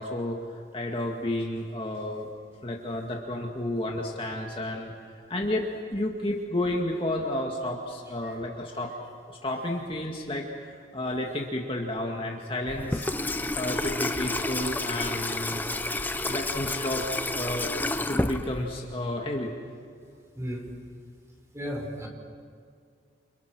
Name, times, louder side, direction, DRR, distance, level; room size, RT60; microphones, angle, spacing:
voice 1, 0.0-2.3 2.6-13.1 13.6-15.9 16.2-17.1 17.3-17.7 18.1-19.5, left 1 dB, 30° left, 0 dB, 2.0 m, -31 dB
Water tap faucet / Sink (filling or washing), 12.7-18.9, left 2 dB, 10° left, 0.7 m, -30 dB
voice 2, 21.5-22.1, equal, 15° right, 1 dB, 5.0 m, -34 dB
29.5 x 28.0 x 6.3 m, 2.2 s
head